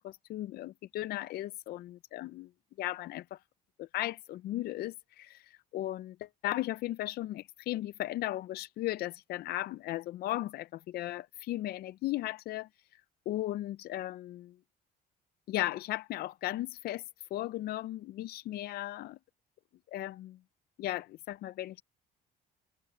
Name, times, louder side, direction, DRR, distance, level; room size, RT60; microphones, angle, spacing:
voice 1, 0.0-2.5 2.8-3.4 3.8-12.7 13.3-14.5 15.5-17.0 17.3-19.2 19.9-20.4 20.8-21.8, left 15 dB, 65° left, 0.5 m, -36 dB
cardioid pair, 110°, 17 cm